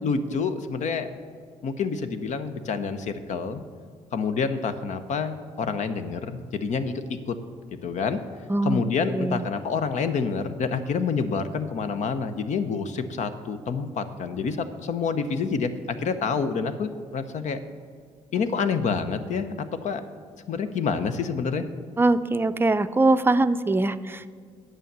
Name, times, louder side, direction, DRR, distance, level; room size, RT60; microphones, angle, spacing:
voice 1, 0.0-1.1 1.6-3.6 4.1-6.9 7.3-7.4 7.8-8.2 8.6-17.6 18.3-20.0 20.5-21.6, left 5 dB, 60° left, 10 dB, 0.8 m, -28 dB
voice 2, 8.5-8.8 9.1-9.4 22.0-24.3, right 2 dB, 15° right, 11 dB, 0.5 m, -22 dB
9.0 x 6.3 x 6.7 m, 2.1 s
hypercardioid pair, 55°, 14 cm